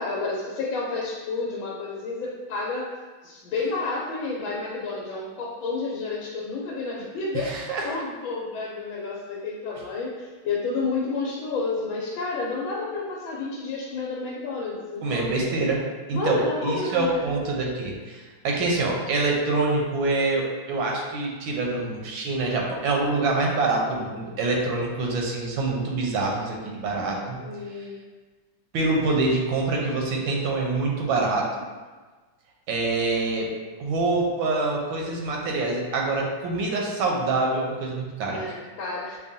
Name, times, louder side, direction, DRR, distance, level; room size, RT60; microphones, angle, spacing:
voice 1, 0.0-2.9 3.2-15.3 16.1-17.3 27.4-28.0 38.2-39.2, left 3 dB, 85° left, -4 dB, 1.4 m, -30 dB
voice 2, 7.3-7.9 15.0-15.8 16.1-27.4 28.7-31.5 32.7-33.5 33.8-38.4, right 3 dB, 85° right, -1 dB, 1.4 m, -25 dB
5.5 x 2.3 x 2.6 m, 1.3 s
omnidirectional pair, 2.1 m